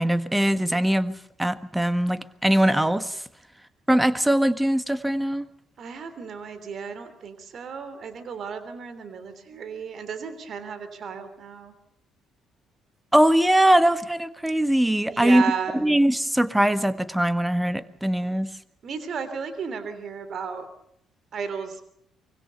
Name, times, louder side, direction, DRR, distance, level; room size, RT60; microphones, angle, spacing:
voice 1, 0.0-3.2 3.9-5.4 13.1-15.4 15.8-18.5, right 1 dB, 5° right, 14 dB, 1.5 m, -21 dB
voice 2, 5.8-11.7 15.1-15.8 18.8-20.7 21.3-21.8, right 6 dB, 50° right, 11 dB, 3.3 m, -34 dB
24.0 x 22.0 x 6.9 m, 0.73 s
figure-of-eight pair, 45°, 0 cm